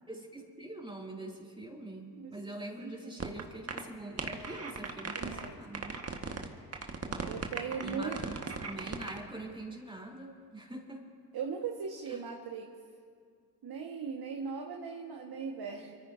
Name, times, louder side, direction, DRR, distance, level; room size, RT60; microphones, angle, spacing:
voice 1, 0.1-6.0 7.0-7.4 7.8-11.1 12.1-12.2, right 1 dB, 10° right, -1 dB, 3.6 m, -44 dB
voice 2, 2.8-3.4 5.2-5.6 7.2-8.1 11.3-12.7 13.6-15.9, right 6 dB, 50° right, 1 dB, 1.7 m, -39 dB
sound 1, 3.2-3.4 3.7-3.8 4.2-5.5 5.7-6.5 6.7-9.2, right 5 dB, 30° right, 1.7 m, -37 dB
29.0 x 14.5 x 2.8 m, 2.1 s
figure-of-eight pair, 40°, 47 cm